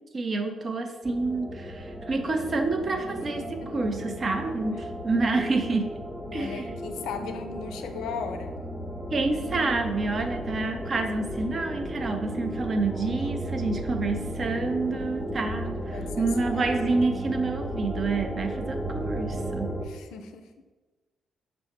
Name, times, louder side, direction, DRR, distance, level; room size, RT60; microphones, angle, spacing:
voice 1, 0.1-5.9 6.3-6.7 9.1-19.8, right 3 dB, 45° right, 6 dB, 0.5 m, -28 dB
sound 1, 1.0-19.8, equal, 10° left, 0.6 m, -34 dB
voice 2, 3.6-3.9 4.8-4.9 6.3-8.6 12.9-13.3 15.9-16.8 19.8-20.5, left 6 dB, 80° left, 6 dB, 0.4 m, -38 dB
5.4 x 2.1 x 4.3 m, 1.3 s
supercardioid pair, 55°, 0 cm